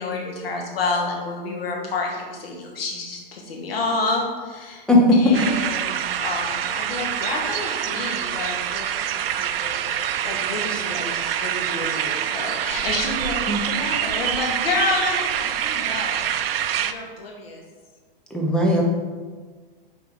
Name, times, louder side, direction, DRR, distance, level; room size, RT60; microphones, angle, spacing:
voice 1, 0.0-4.8 5.1-10.0 10.2-16.3 16.8-17.6, left 3 dB, 85° left, 0 dB, 1.7 m, -29 dB
sound 1, 5.3-16.9, right 10 dB, 85° right, 0.5 m, -26 dB
voice 2, 18.3-18.8, left 1 dB, 5° left, -2 dB, 0.7 m, -17 dB
6.6 x 4.7 x 3.7 m, 1.4 s
hypercardioid pair, 150°, 29 cm